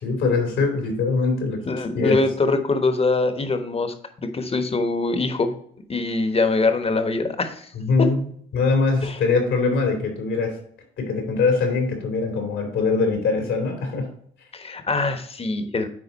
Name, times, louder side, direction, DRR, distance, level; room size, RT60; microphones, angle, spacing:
voice 1, 0.0-1.6 1.9-2.2 7.7-8.2 8.5-10.6 11.0-14.1, left 4 dB, 80° left, 3 dB, 3.1 m, -22 dB
voice 2, 1.6-5.5 5.9-7.7 8.0-8.1 9.0-9.2 14.5-15.9, left 3 dB, 30° left, 8 dB, 1.2 m, -23 dB
9.8 x 4.0 x 4.1 m, 0.63 s
cardioid pair, 90°, 20 cm